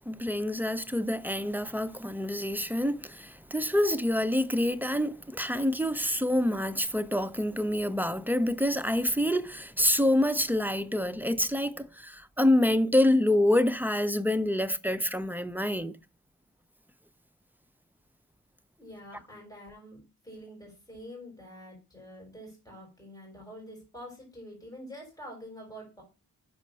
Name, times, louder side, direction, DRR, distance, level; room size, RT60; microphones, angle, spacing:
voice 1, 0.0-16.0, left 1 dB, 5° right, 0.3 m, -27 dB
voice 2, 18.8-26.0, equal, 10° left, 3.7 m, -46 dB
6.1 x 4.2 x 5.1 m
wide cardioid pair, 100°, 36 cm